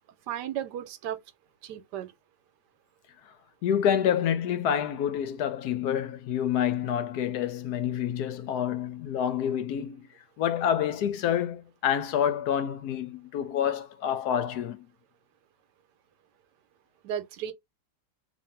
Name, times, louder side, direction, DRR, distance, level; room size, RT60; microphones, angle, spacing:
voice 1, 0.3-1.2 1.6-2.1 17.0-17.5, right 10 dB, 80° right, 1.3 m, -34 dB
voice 2, 3.6-10.1 10.4-14.9, left 9 dB, 75° left, 1.1 m, -28 dB
2.7 x 2.6 x 4.3 m
omnidirectional pair, 1.8 m